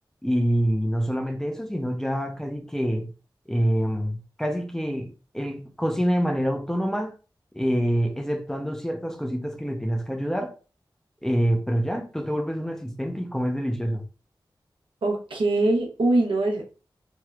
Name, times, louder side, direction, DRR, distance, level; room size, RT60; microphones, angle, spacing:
voice 1, 0.2-3.1 3.5-7.1 7.5-10.5 11.2-14.0, equal, 5° left, 0.6 m, -26 dB
voice 2, 15.0-16.7, right 2 dB, 85° right, 0.9 m, -23 dB
3.0 x 2.9 x 2.4 m
cardioid pair, 50°, 8 cm